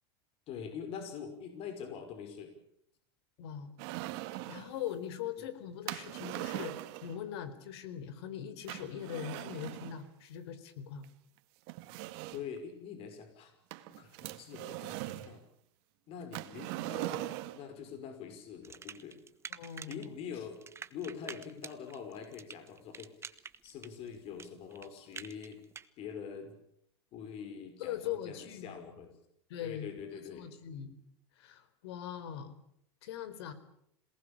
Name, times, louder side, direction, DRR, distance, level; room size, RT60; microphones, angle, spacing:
voice 1, 0.5-2.5 5.4-5.5 12.3-13.5 13.9-15.4 16.1-19.2 19.9-20.6 20.9-23.1 23.6-25.6 26.0-26.6 27.1-29.1 29.6-30.6, left 7 dB, 45° left, 7 dB, 5.8 m, -44 dB
voice 2, 3.4-3.7 4.3-6.8 7.0-11.1 19.5-20.1 27.8-28.7 29.5-29.9 30.3-31.0 31.4-32.6 33.0-33.5, left 9 dB, 70° left, 13 dB, 4.1 m, -41 dB
sound 1, 3.8-4.7 5.9-7.2 8.7-10.0 11.0-11.1 11.7-12.6 13.7-15.3 16.3-17.7, right 17 dB, 60° right, 2.0 m, -40 dB
sound 2, 18.6-20.1 20.3-25.9, right 6 dB, 20° right, 1.4 m, -47 dB
27.0 x 19.5 x 8.9 m, 0.74 s
supercardioid pair, 125°, 14 cm